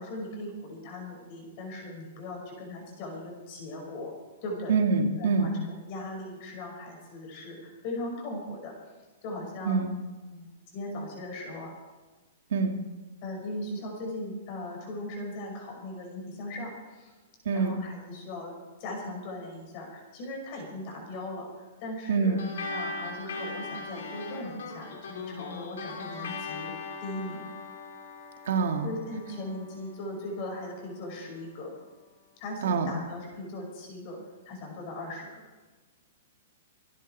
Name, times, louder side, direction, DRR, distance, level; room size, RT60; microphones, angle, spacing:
voice 1, 0.0-4.1 4.4-4.7 5.1-8.7 9.2-9.8 10.3-11.8 13.2-17.1 17.5-18.5 18.8-22.4 22.7-26.7 27.0-27.5 28.8-31.7 32.4-34.2 34.5-35.4, left 1 dB, 30° left, 0 dB, 5.5 m, -39 dB
voice 2, 4.7-5.5 9.6-9.9 12.5-12.7 17.5-17.8 22.1-22.4 28.5-28.9 32.6-32.9, right 4 dB, 60° right, 4 dB, 2.1 m, -25 dB
sound 1, 22.4-31.2, left 3 dB, 75° left, 3.9 m, -40 dB
26.0 x 10.0 x 4.6 m, 1.3 s
hypercardioid pair, 175°, 0 cm